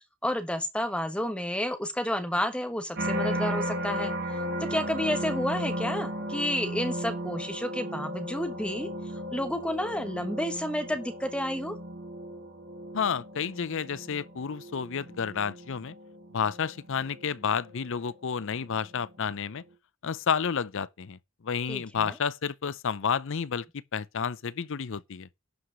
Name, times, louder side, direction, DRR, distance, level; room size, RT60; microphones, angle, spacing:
voice 1, 0.2-4.1 4.6-8.9 9.3-11.8 21.7-22.1, left 1 dB, 5° left, 1.2 m, -30 dB
sound 1, 2.9-18.1 18.7-19.1, equal, 50° right, 2.1 m, -35 dB
voice 2, 12.9-16.0 16.3-19.6 20.0-23.7 23.9-25.3, left 6 dB, 60° left, 0.6 m, -30 dB
11.5 x 5.0 x 6.3 m
head